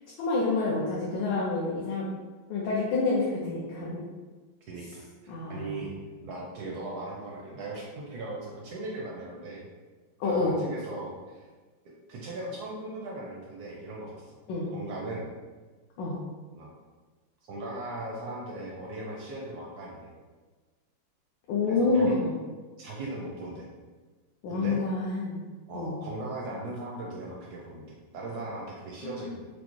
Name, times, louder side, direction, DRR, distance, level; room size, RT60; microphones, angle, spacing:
voice 1, 0.2-2.1 2.5-4.0 5.3-5.7 10.2-10.6 14.5-14.7 16.0-16.2 21.5-22.3 24.4-25.4 25.7-26.0 29.0-29.2, left 3 dB, 75° left, -5 dB, 1.3 m, -28 dB
voice 2, 4.7-5.9 6.2-9.7 10.2-11.5 11.8-14.3 14.7-15.3 16.5-16.7 17.4-20.1 21.7-22.1 22.8-23.7 24.5-24.8 25.7-29.5, right 2 dB, 75° right, -3 dB, 0.9 m, -38 dB
4.8 x 2.0 x 3.0 m, 1.4 s
omnidirectional pair, 2.1 m